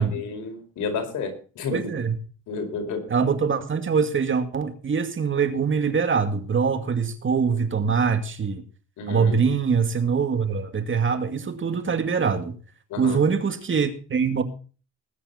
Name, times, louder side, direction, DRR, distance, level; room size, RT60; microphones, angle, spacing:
voice 1, 0.0-1.9 2.5-3.0 9.0-9.3 12.9-13.2, left 4 dB, 80° left, 4 dB, 5.0 m, -31 dB
voice 2, 1.7-2.1 3.1-8.6 9.1-12.5 13.0-14.4, right 6 dB, 40° right, 8 dB, 2.3 m, -23 dB
20.0 x 8.9 x 4.2 m, 0.37 s
cardioid pair, 90°, 30 cm